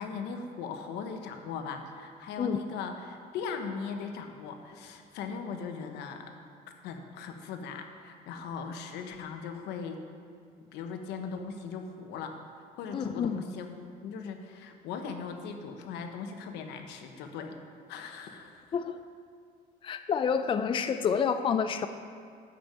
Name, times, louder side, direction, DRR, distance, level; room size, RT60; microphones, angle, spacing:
voice 1, 0.0-6.3 6.8-10.0 10.7-12.4 12.8-13.7 14.0-17.6 17.9-18.7, left 5 dB, 85° left, 5 dB, 1.1 m, -39 dB
voice 2, 12.9-13.4 18.7-19.0 19.8-21.9, left 7 dB, 30° left, 10 dB, 0.4 m, -28 dB
11.0 x 5.2 x 7.4 m, 2.2 s
cardioid pair, 110°, 17 cm